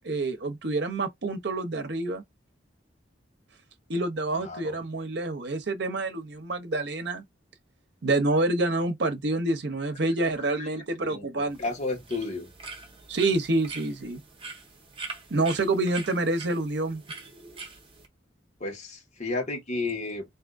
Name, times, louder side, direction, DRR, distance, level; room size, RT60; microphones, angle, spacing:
voice 1, 0.0-2.2 3.9-7.2 8.0-11.6 13.1-14.2 15.3-17.0, right 2 dB, 65° right, 0.8 m, -27 dB
voice 2, 4.3-4.8 10.4-10.7 11.1-12.5 18.6-20.2, left 3 dB, 40° left, 1.6 m, -33 dB
sound 1, 11.5-18.1, right 4 dB, 30° right, 1.1 m, -43 dB
3.5 x 2.8 x 2.5 m
head